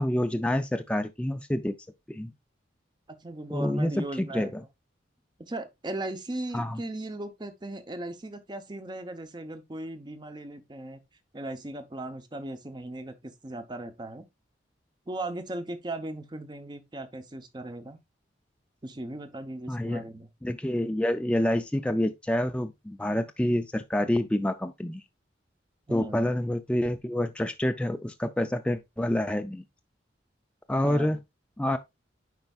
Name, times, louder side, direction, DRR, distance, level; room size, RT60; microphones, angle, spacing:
voice 1, 0.0-1.7 2.1-2.3 3.5-4.6 6.5-6.8 19.7-20.0 20.4-25.0 25.9-29.6 30.7-31.2 31.6-31.8, left 1 dB, 5° left, 0.3 m, -27 dB
voice 2, 3.2-4.5 5.4-11.0 11.3-14.2 15.1-18.0 18.8-20.3 25.9-26.3 30.8-31.2, right 1 dB, 25° right, 0.7 m, -37 dB
9.4 x 4.5 x 2.3 m
head